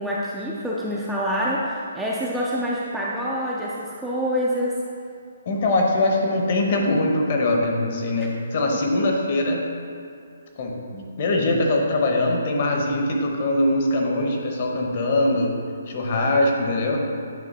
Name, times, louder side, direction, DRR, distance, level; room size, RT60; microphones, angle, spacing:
voice 1, 0.0-4.8 8.7-8.8, equal, ahead, -7 dB, 0.4 m, -26 dB
voice 2, 5.5-9.6 10.6-15.5 15.9-17.0, left 2 dB, 35° left, 1 dB, 0.9 m, -22 dB
9.2 x 3.2 x 5.3 m, 2.4 s
hypercardioid pair, 175°, 0 cm